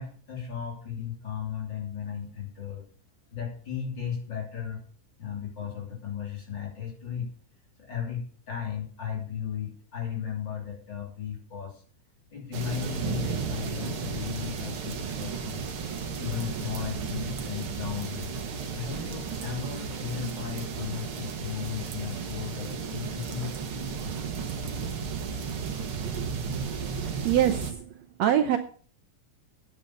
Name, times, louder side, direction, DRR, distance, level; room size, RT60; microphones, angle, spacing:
voice 1, 0.0-2.9 3.3-4.8 5.2-7.3 7.8-11.8 12.3-15.6 16.1-18.4 18.7-23.5, left 8 dB, 35° left, 0 dB, 3.8 m, -35 dB
sound 1, 12.5-27.7, right 6 dB, 50° right, 2.0 m, -34 dB
voice 2, 26.7-27.8 28.2-28.6, right 11 dB, 70° right, 8 dB, 1.8 m, -25 dB
9.5 x 8.9 x 6.6 m, 0.43 s
omnidirectional pair, 3.6 m